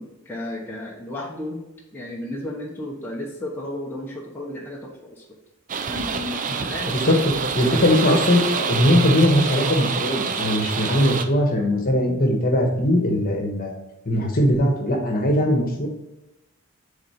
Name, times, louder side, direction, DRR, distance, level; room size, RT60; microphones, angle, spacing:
voice 1, 0.0-1.6 1.9-5.2 5.9-7.5, left 1 dB, 10° left, -4 dB, 0.9 m, -33 dB
sound 1, 5.7-11.3, right 6 dB, 35° right, 0.5 m, -27 dB
voice 2, 7.5-13.8 14.1-15.9, left 1 dB, 40° left, 1 dB, 1.3 m, -20 dB
6.9 x 3.9 x 4.3 m, 0.96 s
head